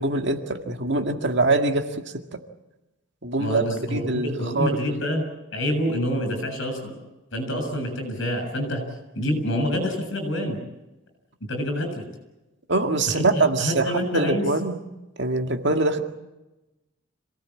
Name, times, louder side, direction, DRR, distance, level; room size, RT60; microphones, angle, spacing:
voice 1, 0.0-1.9 3.2-3.6 3.9-4.8 12.7-14.8 15.2-16.0, right 2 dB, 55° right, 5 dB, 2.1 m, -23 dB
voice 2, 3.4-5.2 5.5-7.0 7.3-8.8 9.2-10.6 11.4-12.0 13.1-14.5, equal, 60° left, 7 dB, 7.4 m, -27 dB
27.0 x 18.0 x 8.7 m, 1.0 s
head